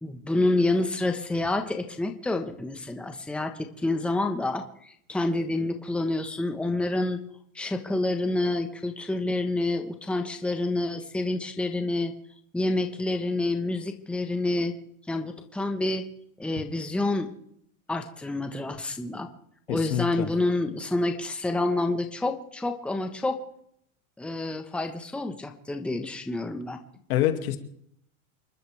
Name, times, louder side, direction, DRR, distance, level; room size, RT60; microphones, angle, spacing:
voice 1, 0.0-7.2 7.5-12.1 12.5-14.7 15.1-16.1 16.4-17.3 17.9-19.3 19.7-23.4 24.2-26.8, left 2 dB, 5° left, 5 dB, 1.2 m, -28 dB
voice 2, 19.7-20.3 27.1-27.6, left 12 dB, 75° left, 6 dB, 2.5 m, -26 dB
29.0 x 12.0 x 3.5 m, 0.69 s
supercardioid pair, 140°, 43 cm